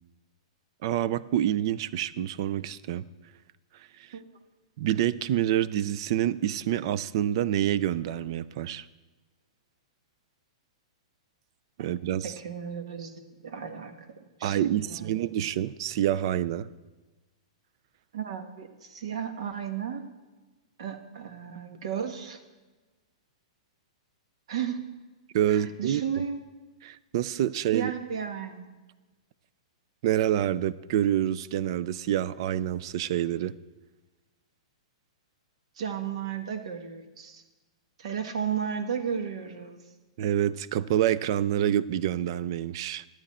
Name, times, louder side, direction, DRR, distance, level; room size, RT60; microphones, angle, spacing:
voice 1, 0.8-3.1 4.8-8.9 11.8-12.3 14.4-16.7 25.3-26.0 26.8-27.9 30.0-33.5 40.2-43.1, right 11 dB, 50° right, 18 dB, 0.4 m, -27 dB
voice 2, 12.2-14.1 14.4-15.2 18.1-20.0 20.8-22.4 24.5-24.8 25.5-26.4 27.7-28.7 35.8-37.4 38.0-39.8, right 7 dB, 70° right, 7 dB, 1.4 m, -34 dB
13.0 x 8.9 x 4.3 m, 1.2 s
hypercardioid pair, 150°, 3 cm